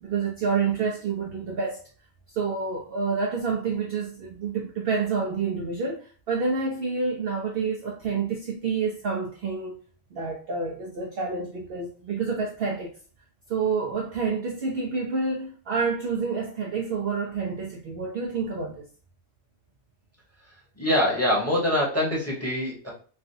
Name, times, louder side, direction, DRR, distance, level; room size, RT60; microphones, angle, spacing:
voice 1, 0.0-1.8 2.3-9.8 10.1-12.9 13.5-18.9, right 5 dB, 60° right, 0.6 m, -28 dB
voice 2, 20.8-22.9, left 1 dB, 10° left, 0.9 m, -24 dB
3.3 x 2.3 x 2.6 m
omnidirectional pair, 1.4 m